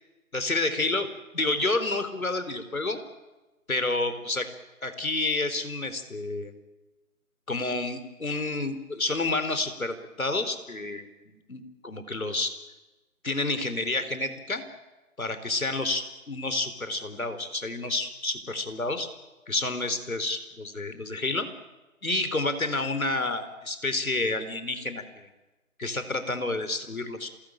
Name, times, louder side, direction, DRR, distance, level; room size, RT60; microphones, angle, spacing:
voice 1, 0.3-1.1 1.3-3.0 3.7-4.5 4.8-6.5 7.5-12.5 13.2-14.6 15.2-19.1 19.5-21.5 22.0-25.3 25.8-27.3, left 2 dB, 70° left, 10 dB, 4.0 m, -29 dB
27.0 x 19.5 x 9.0 m, 1.1 s
figure-of-eight pair, 165°, 43 cm